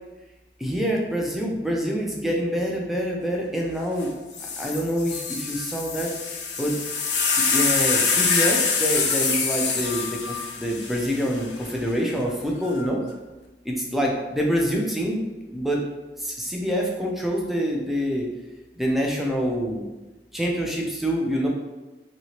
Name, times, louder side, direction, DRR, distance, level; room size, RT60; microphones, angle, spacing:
voice 1, 0.6-4.1 4.4-6.1 6.6-6.7 7.2-13.0 13.6-15.2 15.5-15.8 16.2-18.3 18.8-19.9 20.3-21.5, equal, ahead, -1 dB, 0.4 m, -26 dB
sound 1, 4.0-4.1 4.3-11.7 12.6-13.1, left 5 dB, 65° left, 0.5 m, -25 dB
2.9 x 2.8 x 2.8 m, 1.1 s
head